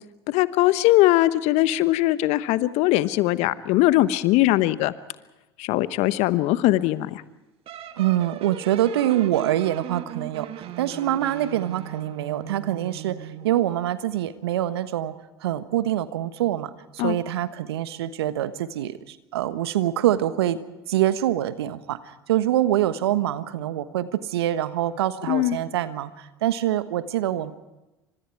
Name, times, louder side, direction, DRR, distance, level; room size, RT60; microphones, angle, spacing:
voice 1, 0.3-4.9 5.6-7.2 17.0-17.2 25.3-25.6, left 16 dB, 55° left, 15 dB, 1.1 m, -20 dB
sound 1, 7.7-13.7, right 9 dB, 45° right, 2.1 m, -38 dB
voice 2, 8.0-15.1 15.4-20.6 20.9-22.0 22.3-27.5, right 12 dB, 75° right, 13 dB, 1.3 m, -25 dB
28.5 x 25.5 x 4.8 m, 1.0 s
figure-of-eight pair, 70°, 14 cm